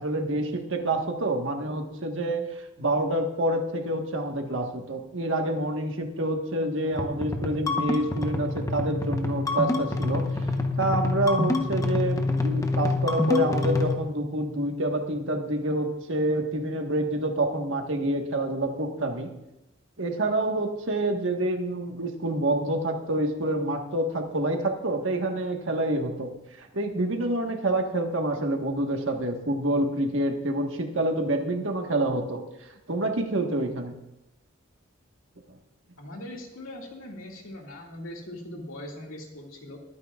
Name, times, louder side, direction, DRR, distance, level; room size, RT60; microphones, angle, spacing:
voice 1, 0.0-10.3 10.8-19.3 20.0-26.3 26.6-32.4 32.9-33.9, right 1 dB, 65° right, 3 dB, 1.5 m, -27 dB
sound 1, 6.9-13.9, left 3 dB, 15° left, 1.0 m, -27 dB
voice 2, 36.0-39.8, left 1 dB, 90° left, 0 dB, 2.3 m, -40 dB
22.5 x 9.8 x 2.5 m, 0.93 s
head